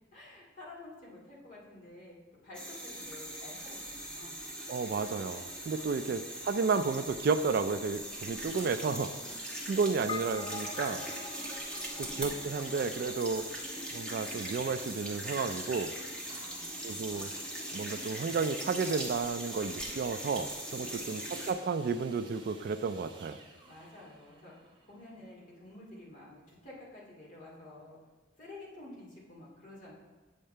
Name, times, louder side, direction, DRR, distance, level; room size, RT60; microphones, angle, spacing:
voice 1, 0.1-2.2 2.4-4.4 5.7-6.1 8.3-9.8 11.4-12.5 16.3-17.2 20.7-21.3 23.6-28.0 28.4-29.9, left 2 dB, 45° left, -5 dB, 2.4 m, -51 dB
sound 1, 2.5-21.5, right 1 dB, 5° left, 1.1 m, -40 dB
voice 2, 4.7-9.1 9.7-11.1 12.1-13.5 13.9-15.9 16.8-17.3 17.7-23.4, right 4 dB, 55° right, 10 dB, 0.3 m, -32 dB
sound 2, 10.1-14.6, left 5 dB, 25° left, 0.3 m, -45 dB
sound 3, 16.3-26.0 26.7-26.8, right 3 dB, 25° right, 1.0 m, -55 dB
8.7 x 6.4 x 3.3 m, 1.3 s
head